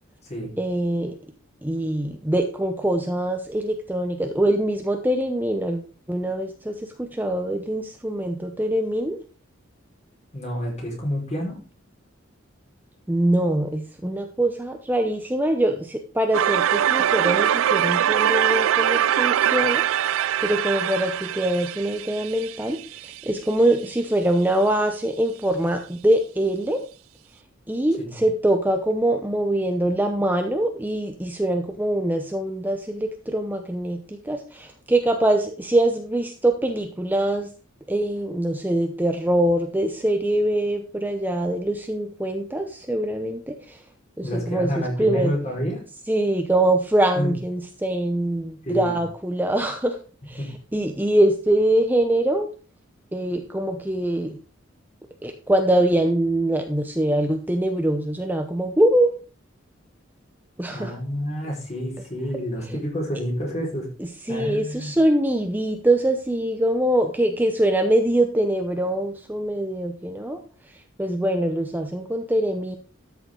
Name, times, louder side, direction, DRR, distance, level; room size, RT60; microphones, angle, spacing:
voice 1, 0.6-1.2 1.6-9.2 13.1-26.8 27.7-37.5 37.9-43.8 44.2-44.7 45.0-45.3 46.1-50.0 50.3-50.4 50.7-52.5 53.1-54.4 55.2-59.1 60.6-60.9 64.0-70.4 71.0-72.8, right 1 dB, 10° right, 5 dB, 0.8 m, -23 dB
voice 2, 10.3-11.6 28.0-28.2 44.2-45.8 47.1-47.3 48.6-49.0 50.4-50.5 60.7-63.9 64.3-64.9, equal, 35° left, -2 dB, 5.1 m, -28 dB
sound 1, 16.3-23.2, right 10 dB, 80° right, 0.4 m, -22 dB
13.0 x 6.9 x 3.9 m, 0.36 s
head